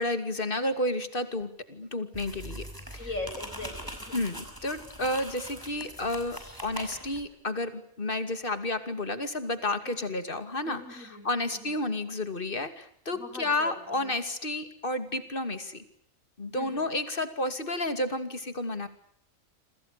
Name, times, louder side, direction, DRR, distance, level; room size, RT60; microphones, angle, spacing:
voice 1, 0.0-2.7 2.9-3.1 4.1-15.8 16.4-18.9, left 2 dB, 40° left, 10 dB, 2.7 m, -31 dB
sound 1, 2.1-7.3, equal, 15° right, 5.7 m, -42 dB
voice 2, 3.0-4.4 9.8-10.1 10.6-11.8 13.1-14.1 16.5-16.9, left 2 dB, 85° left, 7 dB, 7.6 m, -41 dB
28.5 x 25.5 x 6.7 m, 0.65 s
omnidirectional pair, 1.4 m